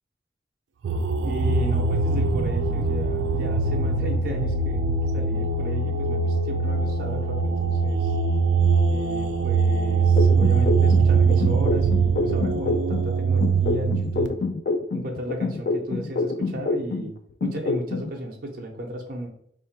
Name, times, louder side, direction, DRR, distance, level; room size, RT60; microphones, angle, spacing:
sound 1, 0.8-14.3, right 4 dB, 85° right, 0.4 m, -22 dB
voice 1, 1.2-4.8 5.1-8.1 8.9-14.4 14.9-17.1 17.4-19.3, right 1 dB, 50° right, 1 dB, 0.6 m, -34 dB
sound 2, 10.2-13.1 13.4-17.1 17.4-18.1, left 3 dB, 50° left, 0.3 m, -26 dB
3.2 x 2.5 x 4.4 m, 0.66 s
head